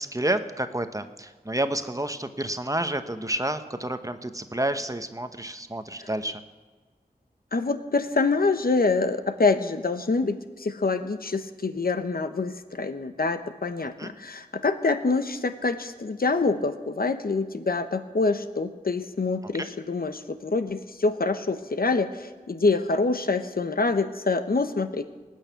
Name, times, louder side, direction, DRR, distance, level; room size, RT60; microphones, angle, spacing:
voice 1, 0.0-6.4 14.0-14.1 19.4-19.7, right 1 dB, 20° right, 9 dB, 0.9 m, -30 dB
voice 2, 7.5-25.1, left 3 dB, 70° left, 9 dB, 0.9 m, -26 dB
18.5 x 6.5 x 9.3 m, 1.4 s
wide cardioid pair, 55°, 16 cm